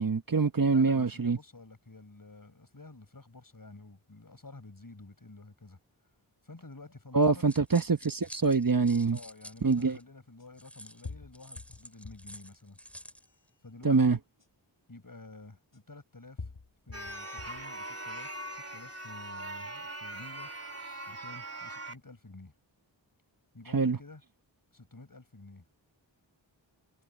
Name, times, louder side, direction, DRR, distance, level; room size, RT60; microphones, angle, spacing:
voice 1, 0.0-1.4 7.1-9.2 9.6-10.0 13.8-14.2 23.7-24.0, right 4 dB, 45° right, 1.2 m, -25 dB
voice 2, 0.7-5.8 6.4-7.5 9.1-12.8 13.6-14.2 14.9-16.5 16.9-20.5 21.1-22.5 23.5-24.2 24.7-25.7, left 2 dB, 45° left, 5.8 m, -50 dB
sound 1, 7.2-10.0 10.6-13.3, equal, 5° left, 3.7 m, -50 dB
sound 2, 9.1-9.2 10.4-10.5 11.0-12.4 12.9-13.4 14.4-14.5 15.7-15.8 16.4-17.7 18.2-18.8, left 3 dB, 65° left, 7.8 m, -46 dB
sound 3, 16.9-21.9, right 1 dB, 30° right, 2.3 m, -41 dB
cardioid pair, 40°, 46 cm